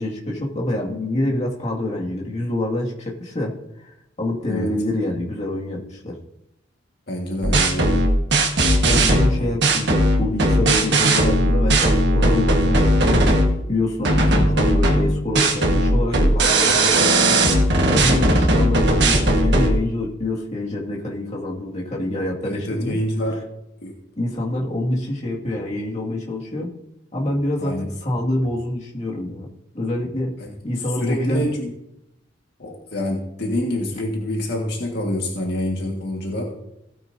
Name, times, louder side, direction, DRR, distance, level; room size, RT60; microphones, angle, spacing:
voice 1, 0.0-6.2 8.8-13.2 13.7-17.4 17.9-23.0 24.1-26.8 27.1-29.5 29.7-30.4 30.6-31.4, left 1 dB, 35° left, -3 dB, 2.1 m, -26 dB
voice 2, 7.1-8.0 9.4-9.5 14.1-14.5 22.4-23.4 23.8-23.9 27.6-27.9 30.5-30.6 31.0-31.7 32.6-36.4, left 1 dB, 60° left, 0 dB, 1.7 m, -26 dB
sound 1, 7.4-13.6 14.0-19.7, right 1 dB, 65° right, 1.5 m, -17 dB
16.5 x 9.2 x 2.7 m, 0.83 s
head